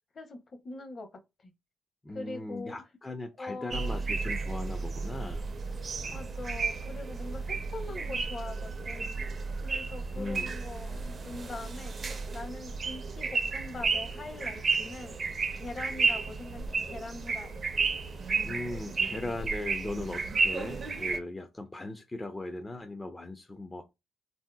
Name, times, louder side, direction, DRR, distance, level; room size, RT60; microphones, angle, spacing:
voice 1, 0.6-1.1 1.4-1.5 2.1-2.7 3.4-4.1 6.0-9.1 9.6-15.2 15.5-17.6, left 2 dB, 45° left, 0.8 m, -42 dB
voice 2, 2.0-5.4 10.1-10.6 18.4-23.8, left 2 dB, 20° left, 0.4 m, -38 dB
sound 1, 3.7-21.2, right 4 dB, 40° right, 0.5 m, -32 dB
3.5 x 2.7 x 2.2 m
cardioid pair, 90°, 0 cm